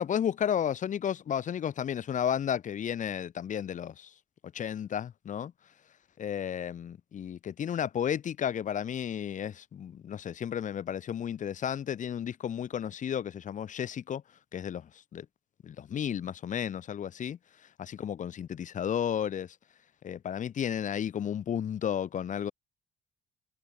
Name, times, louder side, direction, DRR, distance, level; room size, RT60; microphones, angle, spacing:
voice 1, 0.0-4.1 4.5-5.5 6.2-14.2 14.5-15.3 15.6-17.4 17.8-19.5 20.0-22.5, left 9 dB, 50° left, 2.8 m, -33 dB
cardioid pair, 110°, 17 cm